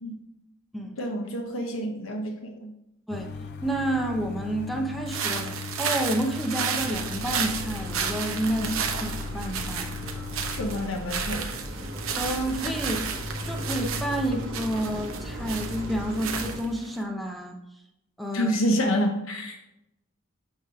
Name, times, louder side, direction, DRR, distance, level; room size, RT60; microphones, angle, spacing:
voice 1, 1.0-2.7 8.6-8.7 10.5-11.6 18.3-19.6, equal, 85° left, 3 dB, 0.9 m, -28 dB
sound 1, 3.1-10.9, left 5 dB, 55° left, 0.4 m, -38 dB
voice 2, 3.1-10.0 12.2-13.1 13.4-17.6 18.2-18.6, right 1 dB, ahead, 1 dB, 0.7 m, -30 dB
sound 2, 5.1-17.0, right 7 dB, 85° right, 0.8 m, -33 dB
sound 3, 6.8-16.6, equal, 65° right, 1.3 m, -36 dB
7.4 x 3.2 x 5.9 m, 0.86 s
head